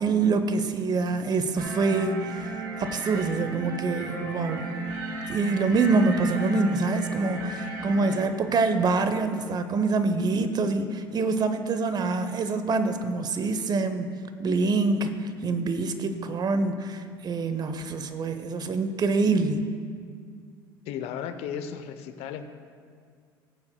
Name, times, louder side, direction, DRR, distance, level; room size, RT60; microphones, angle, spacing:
voice 1, 0.0-4.6 5.3-14.1 14.4-15.1 15.4-19.7, right 3 dB, 35° right, 10 dB, 0.8 m, -25 dB
sound 1, 1.6-8.2, right 2 dB, 75° right, 1.3 m, -34 dB
voice 2, 20.9-22.5, left 8 dB, 60° left, 9 dB, 0.7 m, -35 dB
19.0 x 8.6 x 2.2 m, 2.1 s
hypercardioid pair, 70°, 12 cm